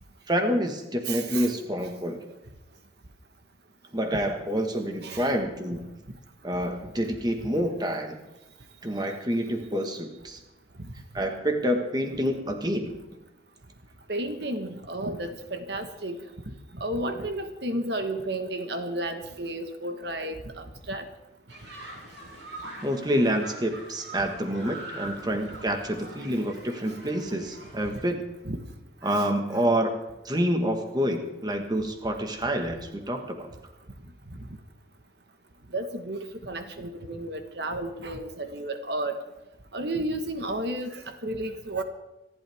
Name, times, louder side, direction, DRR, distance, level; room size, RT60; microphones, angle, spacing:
voice 1, 0.3-2.3 3.9-5.9 6.4-8.2 8.8-10.4 11.1-13.0 22.8-28.2 29.0-30.0 30.2-33.5, equal, 20° right, 5 dB, 1.5 m, -27 dB
voice 2, 1.1-1.5 1.8-1.9 5.0-5.3 10.8-10.9 14.1-16.2 16.7-21.1 28.4-28.6 29.0-29.2 34.3-34.4 35.7-39.2 39.7-41.8, right 1 dB, 60° right, 7 dB, 1.4 m, -32 dB
sound 1, 21.5-28.0, right 1 dB, 85° right, 6.6 m, -43 dB
26.0 x 11.5 x 3.6 m, 1.0 s
head